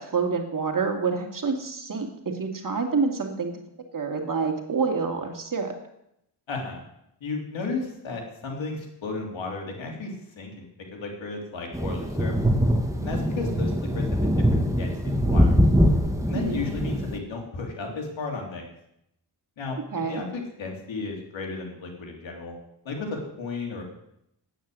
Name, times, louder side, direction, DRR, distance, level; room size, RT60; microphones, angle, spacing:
voice 1, 0.0-2.1 2.3-3.5 3.9-5.7 16.3-16.6 19.9-20.2, right 4 dB, 45° right, 3 dB, 2.5 m, -27 dB
voice 2, 6.5-6.8 7.2-12.3 13.0-14.3 14.8-15.6 16.3-18.7 19.6-19.8 20.1-22.5 22.8-23.8, left 3 dB, 80° left, 1 dB, 3.1 m, -34 dB
sound 1, 11.7-17.2, equal, 5° right, 1.6 m, -23 dB
9.3 x 8.9 x 7.8 m, 0.79 s
cardioid pair, 65°, 45 cm